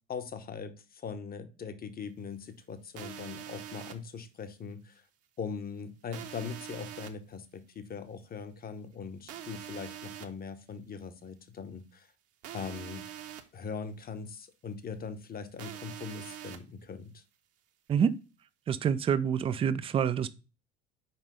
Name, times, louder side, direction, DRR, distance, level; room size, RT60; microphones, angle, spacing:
voice 1, 0.1-5.0 5.4-12.1 12.5-13.1 13.5-17.2, left 5 dB, 25° left, 0.9 m, -41 dB
sound 1, 3.0-3.9 6.1-7.1 9.3-10.3 12.4-13.4 15.6-16.6, right 11 dB, 45° right, 1.0 m, -43 dB
voice 2, 18.7-20.3, right 7 dB, 15° right, 0.4 m, -27 dB
5.5 x 5.0 x 5.3 m
figure-of-eight pair, 65°, 35 cm